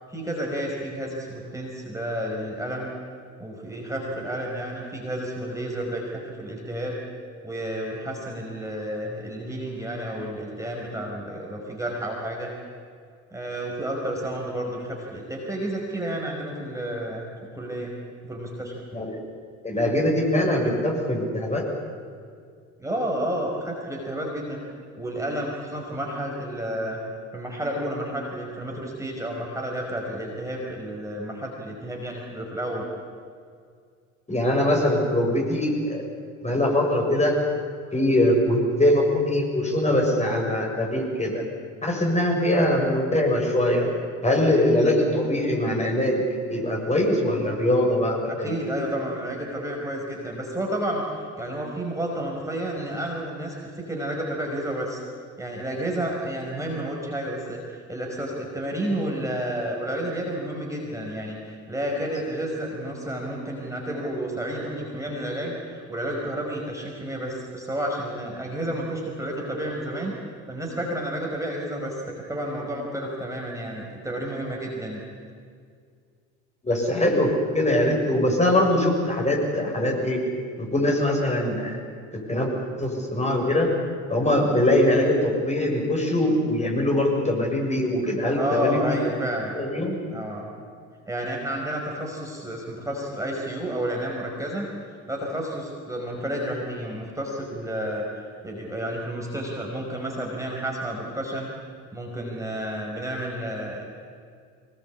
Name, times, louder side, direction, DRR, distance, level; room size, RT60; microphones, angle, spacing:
voice 1, 0.1-2.9 3.4-7.0 7.4-12.5 13.3-17.3 17.5-17.9 18.2-18.7 22.8-24.6 25.0-27.0 27.3-32.9 48.3-55.0 55.4-70.1 70.5-75.0 88.3-89.6 90.1-90.5 91.1-94.7 95.1-101.5 101.9-103.8, right 1 dB, 10° right, -2 dB, 5.2 m, -31 dB
voice 2, 19.6-21.6 34.3-36.1 36.4-37.4 37.9-41.4 41.8-43.9 44.2-46.2 46.5-48.6 76.6-80.2 80.6-81.8 82.1-82.5 82.8-83.7 84.1-88.8 89.5-90.0, left 1 dB, 15° left, 0 dB, 6.8 m, -22 dB
23.5 x 20.5 x 8.5 m, 2.2 s
hypercardioid pair, 65°, 39 cm